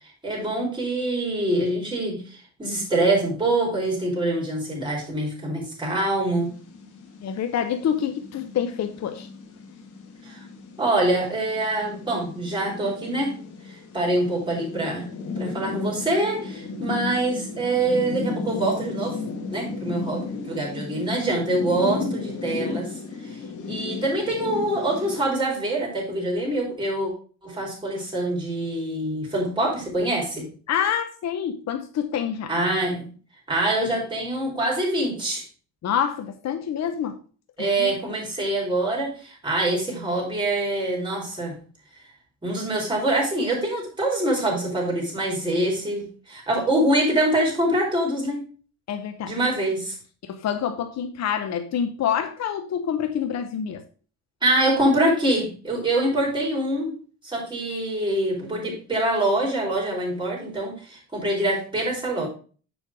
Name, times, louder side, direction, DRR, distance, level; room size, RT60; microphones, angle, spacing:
voice 1, 0.2-6.6 10.2-10.4 10.8-13.3 13.9-15.1 15.4-19.2 19.5-23.0 23.7-27.1 27.4-30.5 32.5-33.1 33.5-35.4 37.6-41.6 42.4-48.4 49.3-49.9 54.4-57.0 57.2-62.3, right 1 dB, 15° right, -4 dB, 4.9 m, -25 dB
sound 1, 6.4-25.3, left 4 dB, 80° left, 2.2 m, -34 dB
voice 2, 7.2-9.3 30.7-32.5 35.8-37.2 37.6-37.9 48.9-49.3 50.3-53.8, left 8 dB, 60° left, 8 dB, 0.8 m, -27 dB
7.1 x 5.4 x 4.7 m, 0.39 s
cardioid pair, 90°, 30 cm